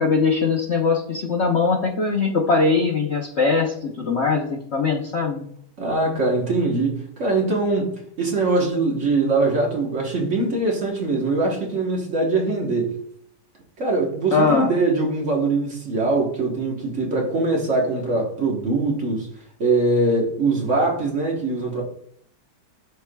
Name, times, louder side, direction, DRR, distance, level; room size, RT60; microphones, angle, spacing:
voice 1, 0.0-5.5 14.3-14.7, left 4 dB, 55° left, 0.7 m, -21 dB
voice 2, 5.8-13.0 13.8-19.3 19.6-21.8, right 3 dB, 45° right, 1.3 m, -22 dB
11.5 x 4.6 x 2.2 m
omnidirectional pair, 2.0 m